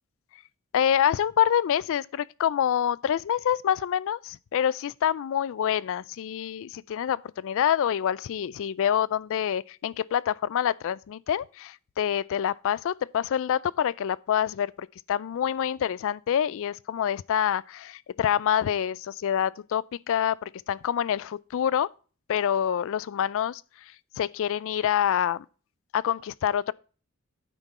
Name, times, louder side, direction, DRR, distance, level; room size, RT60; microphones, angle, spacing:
voice 1, 0.7-21.9 22.3-23.6 24.2-25.5 25.9-26.7, left 9 dB, 65° left, 0.3 m, -26 dB
9.0 x 6.0 x 4.2 m
head